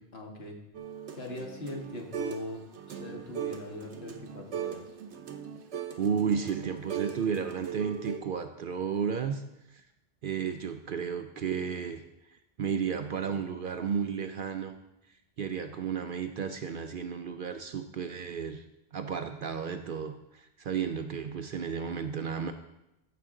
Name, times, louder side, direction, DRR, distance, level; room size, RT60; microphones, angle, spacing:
voice 1, 0.1-0.6 1.1-2.6 2.9-4.9, left 2 dB, 60° left, 0 dB, 1.8 m, -40 dB
sound 1, 0.7-2.5 2.7-8.2, right 9 dB, 75° right, 1.1 m, -39 dB
voice 2, 6.0-9.4 9.7-9.8 10.2-12.0 12.6-14.7 15.4-18.6 18.9-22.5, right 7 dB, 60° right, 7 dB, 0.6 m, -33 dB
15.0 x 5.8 x 3.7 m, 0.90 s
omnidirectional pair, 1.2 m